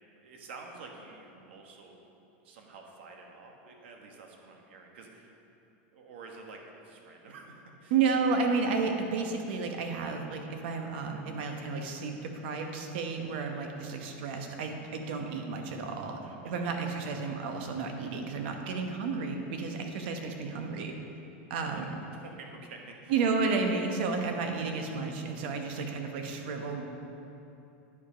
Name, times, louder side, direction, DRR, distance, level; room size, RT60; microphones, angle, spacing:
voice 1, 0.2-2.0 2.4-5.4 5.9-7.9 16.2-17.5 21.5-21.8 22.1-23.1 24.6-24.8, right 4 dB, 80° right, 2 dB, 1.3 m, -49 dB
voice 2, 7.9-16.2 16.4-20.9 21.5-21.9 23.1-26.8, right 4 dB, 65° right, 4 dB, 1.0 m, -32 dB
9.9 x 4.8 x 5.1 m, 2.9 s
supercardioid pair, 140°, 6 cm